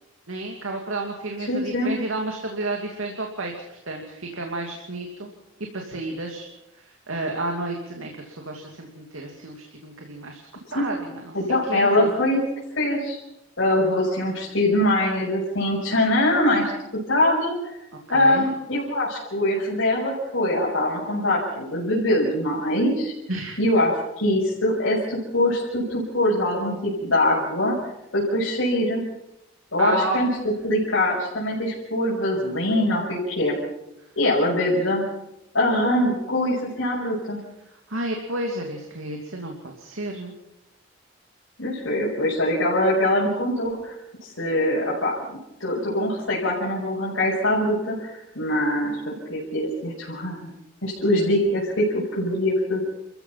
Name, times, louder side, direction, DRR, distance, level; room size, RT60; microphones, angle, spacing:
voice 1, 0.3-5.3 5.7-6.5 6.7-10.4 10.7-11.4 11.7-12.1 18.1-18.5 23.3-23.6 29.8-30.2 37.9-40.3, right 2 dB, 90° right, 1 dB, 2.8 m, -31 dB
voice 2, 1.5-1.9 10.7-10.8 11.3-12.5 12.8-13.2 13.6-16.7 17.1-17.7 18.1-23.1 23.6-27.7 28.1-29.0 29.7-30.3 30.6-33.6 34.2-35.1 35.5-37.4 41.6-43.9 44.2-50.5 50.8-52.8, left 1 dB, 80° left, -6 dB, 6.0 m, -23 dB
29.0 x 15.0 x 6.0 m, 0.88 s
head